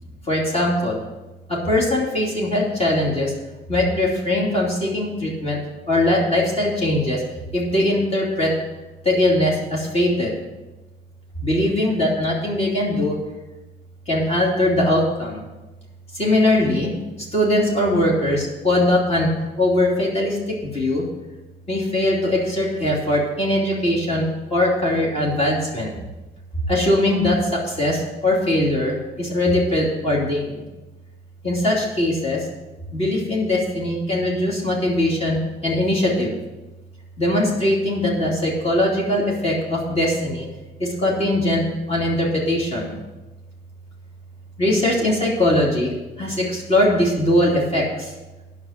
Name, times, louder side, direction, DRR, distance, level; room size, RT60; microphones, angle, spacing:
voice 1, 0.3-1.0 1.5-3.3 3.7-5.6 5.9-7.2 7.5-8.5 9.0-10.4 11.4-13.2 14.1-15.4 16.2-16.9 17.3-19.3 19.6-20.4 20.6-21.0 21.7-24.2 24.5-25.9 26.7-27.4 27.6-30.6 31.4-32.4 32.9-35.4 35.6-36.3 37.2-40.5 40.8-42.9 44.6-45.9 46.2-47.9, left 1 dB, 30° left, -4 dB, 2.9 m, -20 dB
9.5 x 5.8 x 7.4 m, 1.1 s
cardioid pair, 115°, 19 cm